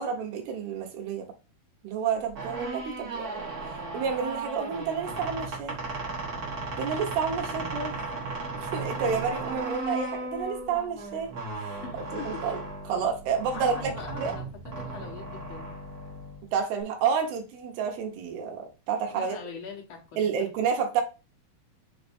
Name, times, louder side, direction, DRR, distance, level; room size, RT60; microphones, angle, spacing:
voice 1, 0.0-1.3 1.8-3.4 3.9-5.8 6.8-7.9 8.5-11.3 11.6-11.8 12.3-13.7 14.2-14.3 16.5-19.4 20.2-21.0, right 6 dB, 85° right, 4 dB, 3.1 m, -30 dB
sound 1, 2.3-16.8, right 3 dB, 65° right, 0.9 m, -36 dB
voice 2, 7.5-7.9 11.8-12.4 13.5-14.5 14.8-15.7 19.1-20.5, left 5 dB, 70° left, 0 dB, 1.1 m, -42 dB
6.4 x 3.4 x 4.3 m, 0.31 s
omnidirectional pair, 4.4 m